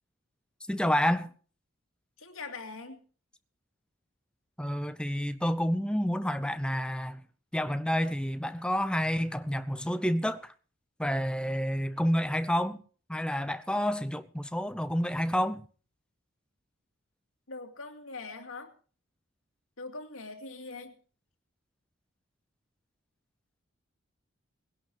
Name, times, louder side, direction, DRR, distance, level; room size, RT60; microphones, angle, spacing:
voice 1, 0.7-1.3 4.6-7.2 7.5-10.5 11.0-12.8 13.1-15.6, equal, 5° left, 0.7 m, -29 dB
voice 2, 2.2-3.0 17.5-18.7 19.8-21.0, left 3 dB, 85° left, 2.4 m, -42 dB
20.0 x 11.0 x 4.8 m
head